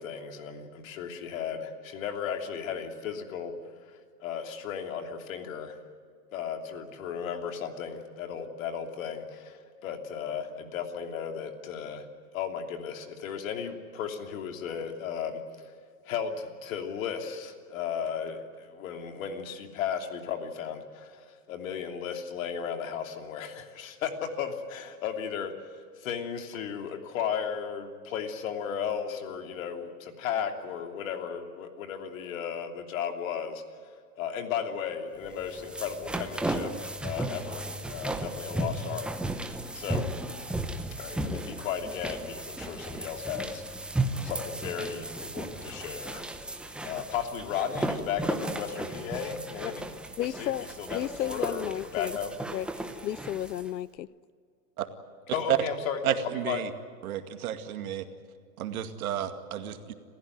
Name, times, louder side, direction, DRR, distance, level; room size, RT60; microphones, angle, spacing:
voice 1, 0.0-3.5 3.9-5.8 6.3-12.1 12.3-15.4 16.1-25.5 26.0-33.6 34.2-39.1 39.7-40.1 41.0-43.6 44.2-46.2 46.8-49.9 50.2-52.3 55.3-56.0 56.4-56.6, left 7 dB, 55° left, 3.1 m, -35 dB
sound 1, 35.3-53.7, right 1 dB, ahead, 0.8 m, -35 dB
voice 2, 50.2-50.7 50.9-52.2 52.5-52.7 53.0-54.1, left 11 dB, 85° left, 0.8 m, -33 dB
voice 3, 56.0-56.7 57.0-58.1 58.6-59.9, right 11 dB, 60° right, 2.3 m, -31 dB
27.5 x 15.5 x 9.4 m
hypercardioid pair, 135°, 49 cm